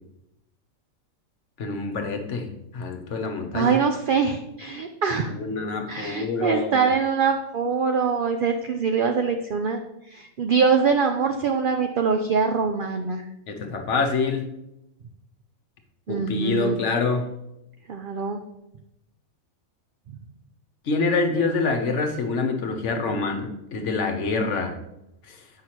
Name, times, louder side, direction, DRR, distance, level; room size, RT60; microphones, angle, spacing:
voice 1, 1.6-3.8 5.3-6.9 13.5-14.5 16.1-17.2 20.8-24.7 25.3-25.4, left 4 dB, 60° left, 5 dB, 1.1 m, -26 dB
voice 2, 3.5-5.3 5.9-9.8 10.1-13.2 16.1-16.8 17.9-18.4, right 5 dB, 70° right, 5 dB, 0.5 m, -23 dB
7.9 x 5.7 x 2.9 m, 0.85 s
omnidirectional pair, 1.4 m